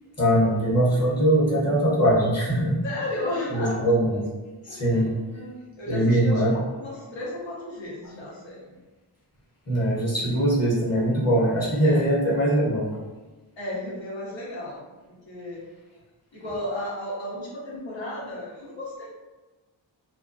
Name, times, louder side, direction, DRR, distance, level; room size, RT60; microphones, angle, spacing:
voice 1, 0.2-2.8 3.5-4.2 4.6-5.1 5.9-6.6 9.7-12.9, right 1 dB, 35° left, -6 dB, 0.8 m, -22 dB
voice 2, 2.8-3.7 4.7-5.5 5.8-6.4 6.8-8.7 11.8-12.1 13.6-14.9 15.2-15.6 16.3-19.1, left 1 dB, 85° left, -6 dB, 0.8 m, -34 dB
2.3 x 2.2 x 2.5 m, 1.2 s
wide cardioid pair, 60°, 44 cm